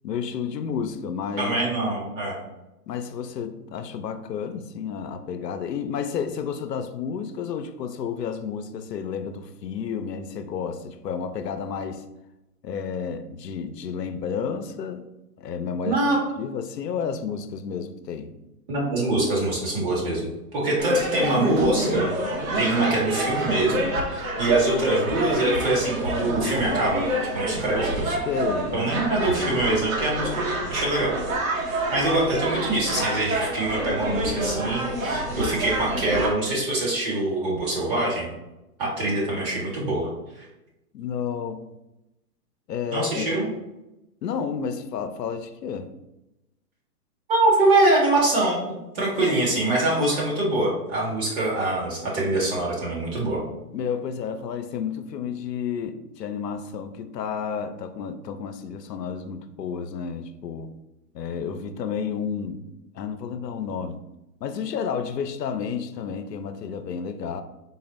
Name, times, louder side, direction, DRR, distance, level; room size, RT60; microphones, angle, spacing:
voice 1, 0.0-1.5 2.9-12.1 12.6-15.0 15.4-18.4 28.3-29.0 40.9-41.7 42.7-43.4 44.2-45.9 49.2-49.4 49.6-49.7 53.7-60.7 61.1-62.7 62.9-64.0 64.4-67.4, left 6 dB, 90° left, 9 dB, 0.6 m, -31 dB
voice 2, 1.4-2.4 15.8-16.2 18.7-20.2 20.5-22.1 22.5-27.0 27.3-28.2 28.7-31.2 31.9-38.3 38.8-40.1 42.9-43.5 47.3-53.4, right 2 dB, 35° right, -4 dB, 1.5 m, -24 dB
sound 1, 20.8-36.3, right 1 dB, 55° right, 0.9 m, -27 dB
4.0 x 2.0 x 3.9 m, 0.94 s
hypercardioid pair, 145°, 47 cm